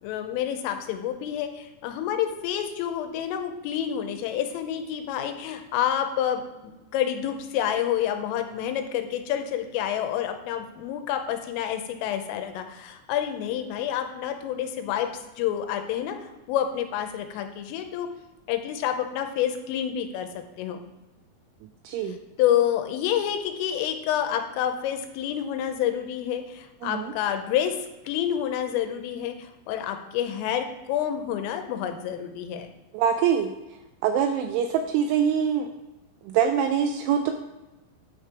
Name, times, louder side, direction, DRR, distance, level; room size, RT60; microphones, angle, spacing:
voice 1, 0.0-16.2 16.5-18.1 18.5-20.8 22.1-27.8 28.1-32.7, left 10 dB, 85° left, 6 dB, 3.2 m, -28 dB
voice 2, 21.8-22.2 26.8-27.1 32.9-33.5 34.0-35.7 36.3-37.3, right 8 dB, 85° right, 6 dB, 2.7 m, -24 dB
9.4 x 4.5 x 4.8 m, 1.0 s
omnidirectional pair, 5.9 m